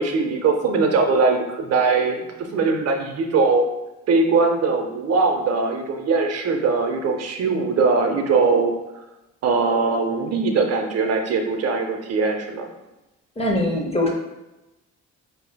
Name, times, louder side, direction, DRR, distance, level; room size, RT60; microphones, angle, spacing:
voice 1, 0.0-3.6 4.1-8.7 9.4-12.7, right 4 dB, 55° right, 4 dB, 0.6 m, -21 dB
voice 2, 13.4-14.1, left 1 dB, 20° left, 1 dB, 0.6 m, -22 dB
4.7 x 2.6 x 2.2 m, 0.98 s
cardioid pair, 90°, 30 cm